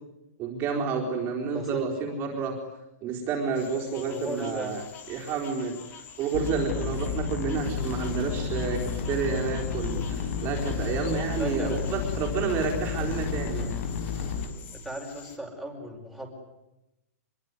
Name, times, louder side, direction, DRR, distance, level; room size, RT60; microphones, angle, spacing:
voice 1, 0.4-2.6 3.0-4.8 5.1-13.8, right 5 dB, 25° right, 0 dB, 4.1 m, -30 dB
voice 2, 1.5-1.8 4.1-4.7 11.4-11.8 14.4-14.6 14.8-16.3, right 1 dB, ahead, 2 dB, 5.6 m, -37 dB
sound 1, 3.5-15.4, left 7 dB, 20° left, 3.1 m, -47 dB
sound 2, 6.3-14.4, left 6 dB, 65° left, 6.0 m, -31 dB
sound 3, 7.8-14.5, left 6 dB, 40° left, 4.8 m, -43 dB
26.0 x 23.0 x 9.8 m, 0.93 s
hypercardioid pair, 160°, 9 cm